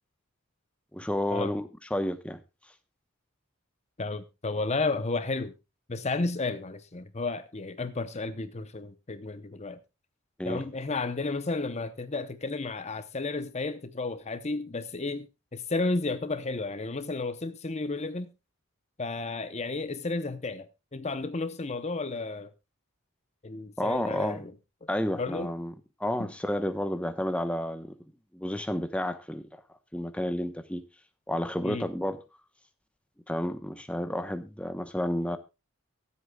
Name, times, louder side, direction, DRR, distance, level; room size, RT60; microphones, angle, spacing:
voice 1, 0.9-2.4 10.4-10.6 23.8-24.5 24.9-25.7 26.0-27.9 28.3-29.5 29.9-30.8 31.3-32.2 33.3-35.4, left 1 dB, 5° left, 0.9 m, -31 dB
voice 2, 4.0-5.5 5.9-9.8 10.4-15.3 15.5-18.3 19.0-20.7 20.9-22.5 23.4-24.5 24.8-24.9 25.2-25.5 26.2-26.3 31.6-31.9, left 3 dB, 30° left, 0.7 m, -32 dB
23.5 x 8.3 x 2.3 m
head